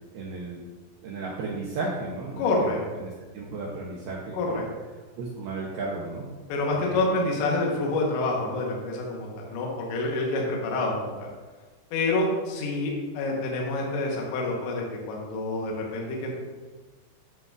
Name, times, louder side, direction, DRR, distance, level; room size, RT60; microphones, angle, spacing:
voice 1, 0.1-0.6 1.0-2.7 3.0-4.6 5.2-6.3 6.9-7.0, right 3 dB, 80° right, -3 dB, 2.3 m, -34 dB
voice 2, 2.4-2.8 4.3-4.6 6.5-11.3 11.9-16.4, left 2 dB, 75° left, -1 dB, 3.2 m, -27 dB
9.4 x 7.7 x 2.5 m, 1.3 s
omnidirectional pair, 5.6 m